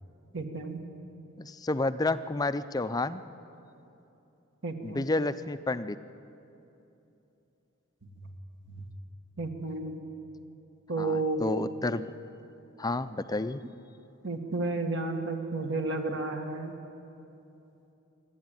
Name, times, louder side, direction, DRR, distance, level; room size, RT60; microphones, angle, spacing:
voice 1, 0.3-0.8 4.6-5.1 8.7-8.9 9.4-10.0 10.9-11.4 14.2-16.7, right 3 dB, 60° right, 4 dB, 1.9 m, -32 dB
voice 2, 1.4-3.2 4.8-6.0 11.0-12.1 12.8-13.6, left 2 dB, 20° left, 12 dB, 0.5 m, -30 dB
26.5 x 11.5 x 9.0 m, 2.9 s
head